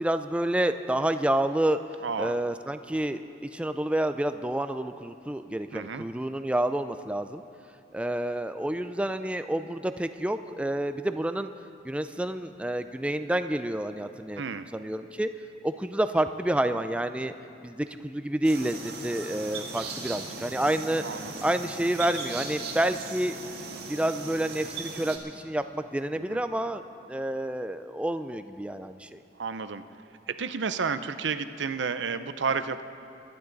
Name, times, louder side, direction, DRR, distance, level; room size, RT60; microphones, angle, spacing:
voice 1, 0.0-1.8 2.2-3.2 3.5-7.4 7.9-11.5 11.8-14.4 14.7-15.3 15.6-17.3 17.6-21.0 21.4-23.4 23.9-26.8 27.1-29.2, right 1 dB, 5° right, 9 dB, 0.3 m, -29 dB
voice 2, 2.0-2.3 5.7-6.0 14.4-14.7 21.0-21.5 26.2-26.4 29.4-29.8 30.3-32.8, right 5 dB, 80° right, 11 dB, 0.6 m, -31 dB
sound 1, 18.4-25.2, right 4 dB, 55° right, 1.9 m, -38 dB
25.5 x 11.0 x 4.0 m, 2.7 s
head